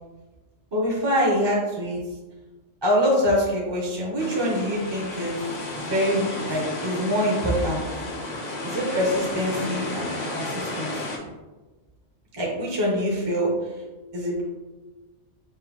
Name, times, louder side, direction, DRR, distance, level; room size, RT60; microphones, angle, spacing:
voice 1, 0.7-2.0 2.8-5.4 5.8-7.8 8.6-10.9 12.3-13.5 14.1-14.4, equal, 25° right, -3 dB, 0.6 m, -24 dB
sound 1, 4.2-11.2, left 2 dB, 45° left, 0.7 m, -32 dB
5.5 x 2.2 x 3.0 m, 1.2 s
omnidirectional pair, 1.3 m